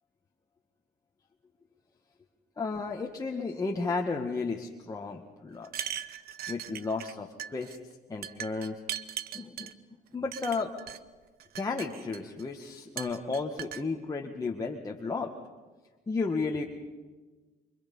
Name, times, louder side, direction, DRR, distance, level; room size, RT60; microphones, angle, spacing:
voice 1, 2.6-5.7 6.5-7.8 8.1-8.8 9.3-9.7 10.1-10.7 11.5-15.3 16.1-16.6, left 4 dB, 20° left, 0 dB, 1.9 m, -33 dB
sound 1, 5.6-7.1 7.4-7.8 8.2-9.7 10.3-11.0 11.4-12.4 13.0-13.8, right 11 dB, 65° right, 1.1 m, -39 dB
29.5 x 24.5 x 5.6 m, 1.3 s
cardioid pair, 110°, 17 cm